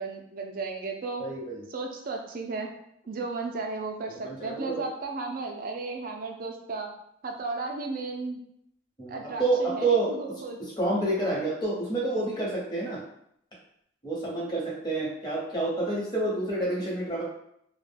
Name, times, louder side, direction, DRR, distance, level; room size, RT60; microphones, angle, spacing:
voice 1, 0.0-1.2 1.7-2.7 3.1-6.9 7.2-8.4 9.1-10.6, right 3 dB, 50° right, 3 dB, 0.4 m, -34 dB
voice 2, 1.2-1.6 4.1-4.8 9.0-10.1 10.8-13.0 14.0-17.2, right 2 dB, 20° left, -6 dB, 0.9 m, -28 dB
2.3 x 2.1 x 3.3 m, 0.73 s
head